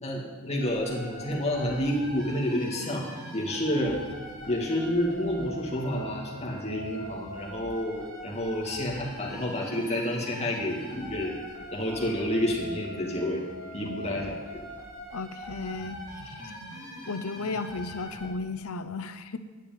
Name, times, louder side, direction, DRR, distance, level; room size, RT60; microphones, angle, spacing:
voice 1, 0.0-4.0 4.4-11.3 11.7-13.4 13.7-14.6, left 1 dB, 30° left, -2 dB, 2.2 m, -29 dB
sound 1, 0.6-18.3, equal, 15° right, 2.8 m, -42 dB
voice 2, 13.8-14.4 15.1-16.5 17.1-19.4, left 3 dB, 75° left, 11 dB, 0.7 m, -35 dB
10.0 x 6.8 x 9.1 m, 1.4 s
head